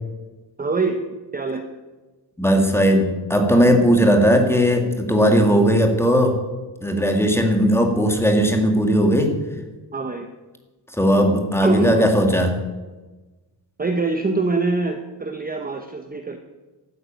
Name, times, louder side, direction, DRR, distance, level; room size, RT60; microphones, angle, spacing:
voice 1, 0.6-1.0 1.3-1.6 9.9-10.3 11.6-12.1 13.8-16.4, right 3 dB, 20° right, 5 dB, 0.8 m, -24 dB
voice 2, 2.4-6.4 6.8-9.4 10.9-12.6, equal, 5° left, 4 dB, 1.9 m, -17 dB
12.5 x 9.6 x 9.1 m, 1.2 s
wide cardioid pair, 170°, 42 cm